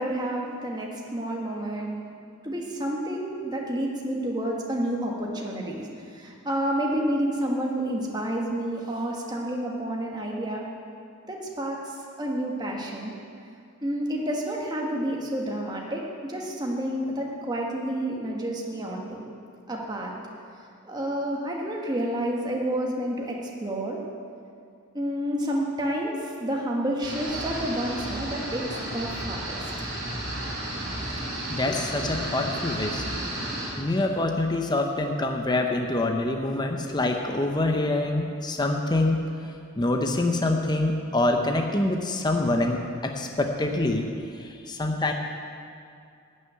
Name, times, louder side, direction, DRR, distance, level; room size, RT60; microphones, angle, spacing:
voice 1, 0.0-2.0 2.4-10.7 11.3-13.1 13.8-19.2 19.7-20.1 20.8-24.0 24.9-28.6 28.9-29.6, right 1 dB, 20° right, -1 dB, 1.4 m, -29 dB
sound 1, 27.0-33.7, right 1 dB, 45° right, 3.4 m, -32 dB
voice 2, 31.5-33.1 33.8-39.2 39.8-44.1 44.4-45.1, left 2 dB, 20° left, 3 dB, 0.7 m, -25 dB
11.5 x 6.4 x 9.2 m, 2.4 s
head